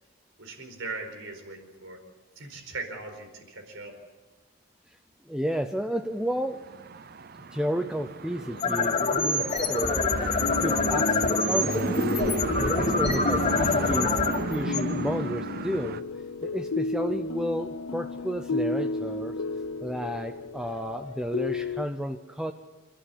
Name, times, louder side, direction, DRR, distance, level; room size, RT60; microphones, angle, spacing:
voice 1, 0.4-2.0 2.4-4.0, right 3 dB, 65° right, 5 dB, 4.8 m, -39 dB
voice 2, 5.3-6.6 7.5-10.1 10.6-11.9 12.6-14.2 14.5-16.0 16.4-19.3 19.8-22.5, equal, 5° right, 6 dB, 0.6 m, -32 dB
sound 1, 6.4-16.0, right 3 dB, 45° right, 0.6 m, -34 dB
sound 2, 8.4-15.5, left 3 dB, 30° left, 2.9 m, -26 dB
sound 3, 8.8-21.9, left 3 dB, 75° left, 0.6 m, -33 dB
28.0 x 13.0 x 8.4 m, 1.2 s
head